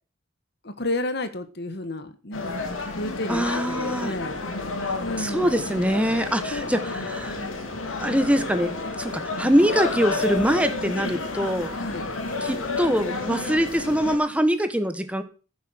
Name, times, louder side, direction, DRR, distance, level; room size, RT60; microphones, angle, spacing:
voice 1, 0.6-2.5 3.0-4.4 5.0-5.6 6.5-6.7 7.3-7.6 11.8-12.1, left 1 dB, 55° left, 1.5 m, -31 dB
sound 1, 2.3-14.2, left 3 dB, 80° left, 2.8 m, -30 dB
voice 2, 3.3-4.1 4.9-7.4 8.0-11.7 12.4-15.2, equal, 5° right, 1.2 m, -24 dB
15.0 x 7.2 x 6.3 m
head